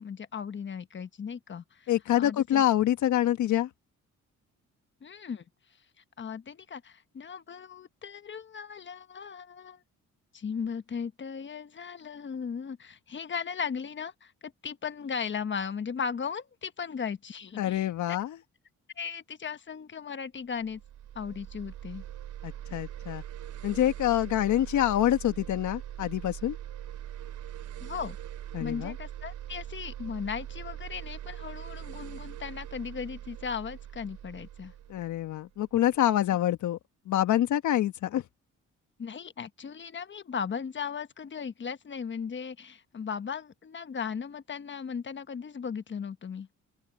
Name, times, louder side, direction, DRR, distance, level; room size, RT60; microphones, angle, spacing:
voice 1, 0.0-1.9 2.2-2.6 5.0-5.4 6.2-9.8 10.3-18.2 19.0-20.8 21.1-22.0 27.8-28.2 28.6-34.7 39.0-46.5, left 6 dB, 40° left, 1.2 m, -37 dB
voice 2, 1.9-3.7 17.6-18.4 22.4-23.2 23.6-26.6 28.5-28.9 34.9-36.8 37.1-38.2, left 12 dB, 75° left, 1.5 m, -26 dB
sound 1, 20.6-36.0, right 11 dB, 75° right, 3.6 m, -42 dB
cardioid pair, 90°, 30 cm